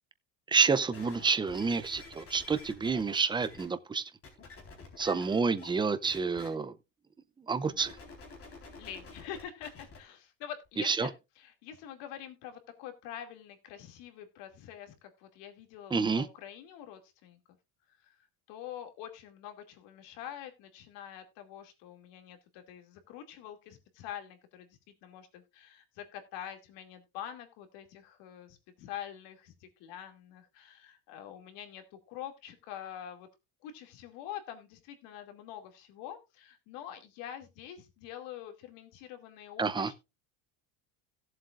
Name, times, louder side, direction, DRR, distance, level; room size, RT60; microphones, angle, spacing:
voice 1, 0.5-4.0 5.0-6.7 7.5-7.9 10.8-11.1 15.9-16.2 39.6-39.9, right 5 dB, 10° right, 0.5 m, -28 dB
sound 1, 0.9-3.6 4.2-5.8 6.0-6.5 7.7-10.0 10.6-10.7, left 4 dB, 30° left, 4.1 m, -49 dB
voice 2, 8.8-17.6 18.0-33.3 33.6-39.9, left 10 dB, 70° left, 2.6 m, -46 dB
17.0 x 7.6 x 2.5 m
cardioid pair, 140°, 44 cm